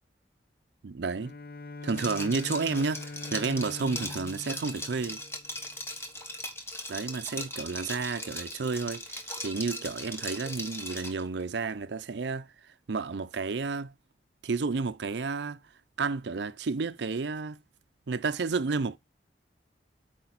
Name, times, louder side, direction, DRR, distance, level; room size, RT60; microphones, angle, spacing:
voice 1, 0.8-1.3 1.8-5.2 6.9-13.9 14.4-15.6 16.0-17.6 18.1-19.0, right 4 dB, 75° right, 0.5 m, -31 dB
Bowed string instrument, 1.2-5.8, left 3 dB, 50° left, 0.6 m, -43 dB
Liquid, 1.9-11.2, left 1 dB, 15° left, 1.2 m, -39 dB
8.7 x 5.0 x 4.0 m
head